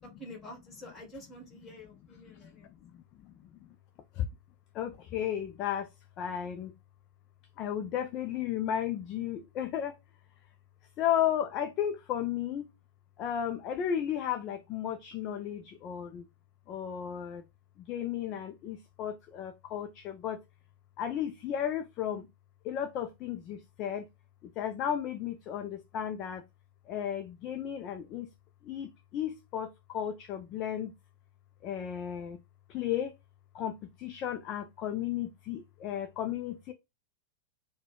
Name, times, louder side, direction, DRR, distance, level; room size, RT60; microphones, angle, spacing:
voice 1, 0.2-2.7, left 1 dB, 20° left, 1.9 m, -48 dB
voice 2, 2.2-3.5 4.1-4.3 4.7-5.9 6.2-6.7 7.6-10.0 11.0-12.7 13.2-16.2 16.7-17.4 17.8-20.4 21.0-22.3 22.6-24.1 24.4-26.4 26.9-28.3 28.6-30.9 31.6-32.4 32.7-33.1 33.5-36.7, left 9 dB, 35° left, 0.4 m, -34 dB
4.0 x 2.2 x 4.5 m
figure-of-eight pair, 90°, 0 cm